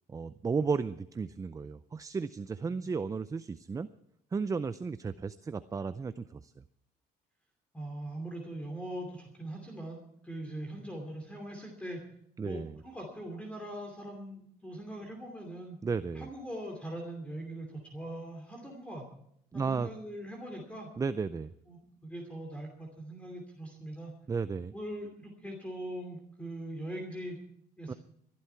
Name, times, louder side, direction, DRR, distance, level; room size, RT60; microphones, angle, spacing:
voice 1, 0.1-3.9 4.3-6.5 12.4-12.8 15.8-16.3 19.5-19.9 21.0-21.5 24.3-24.7 27.9-28.0, right 5 dB, 20° right, 13 dB, 0.4 m, -34 dB
voice 2, 7.7-12.0 12.4-15.8 16.1-19.1 19.5-20.9 21.7-24.1 24.7-27.4 27.8-27.9, right 1 dB, 5° left, 1 dB, 2.8 m, -41 dB
21.0 x 11.5 x 4.6 m, 0.74 s
cardioid pair, 110°, 17 cm